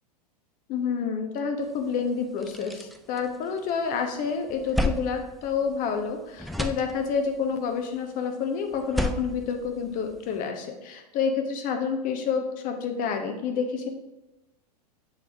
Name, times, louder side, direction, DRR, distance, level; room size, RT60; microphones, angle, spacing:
voice 1, 0.7-13.9, left 6 dB, 40° left, 5 dB, 1.1 m, -29 dB
sound 1, 1.8-1.9 2.2-3.9 4.3-6.1 6.4-7.4 8.7-10.4, left 1 dB, ahead, 0.3 m, -32 dB
7.3 x 4.1 x 3.5 m, 0.97 s
hypercardioid pair, 100°, 21 cm